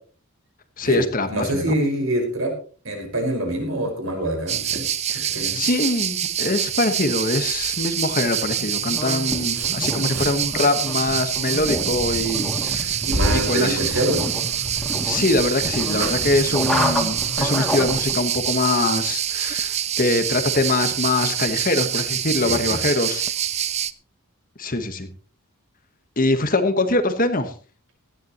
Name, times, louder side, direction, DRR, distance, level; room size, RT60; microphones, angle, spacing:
voice 1, 0.8-1.7 5.1-13.0 13.3-14.0 15.0-23.2 24.6-25.1 26.2-27.5, left 2 dB, 40° left, 9 dB, 1.3 m, -23 dB
voice 2, 1.3-2.5 2.9-4.9 5.1-5.6 13.0-14.3 16.7-16.9 22.4-22.8, right 1 dB, 60° right, 3 dB, 5.2 m, -25 dB
sound 1, 4.5-23.9, right 10 dB, 30° right, 0.5 m, -26 dB
sound 2, 8.6-18.2, equal, ahead, 2.5 m, -29 dB
sound 3, 9.2-17.5, equal, 85° right, 5.7 m, -34 dB
17.5 x 13.0 x 3.0 m, 0.38 s
head